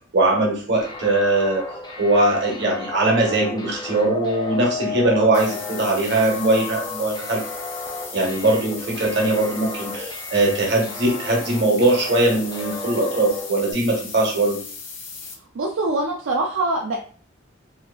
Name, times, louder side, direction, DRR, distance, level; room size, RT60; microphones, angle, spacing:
voice 1, 0.1-1.6 2.0-7.4 8.1-14.6, right 2 dB, 60° right, -1 dB, 0.8 m, -20 dB
sound 1, 0.8-13.7, left 3 dB, 20° left, 0.4 m, -34 dB
sound 2, 5.3-15.3, left 5 dB, 65° left, 0.6 m, -37 dB
voice 2, 15.5-17.0, right 2 dB, 75° right, -1 dB, 0.4 m, -23 dB
2.7 x 2.3 x 2.3 m, 0.43 s
head